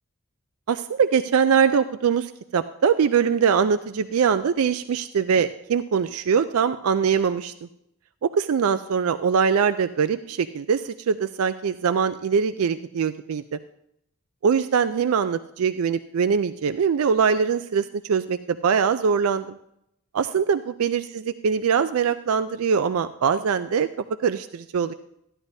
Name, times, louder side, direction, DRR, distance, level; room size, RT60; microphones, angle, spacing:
voice 1, 0.7-7.5 8.2-13.4 14.4-19.6 20.1-23.9 24.2-24.9, right 6 dB, 75° right, 11 dB, 0.4 m, -22 dB
14.5 x 11.0 x 2.7 m, 0.77 s
head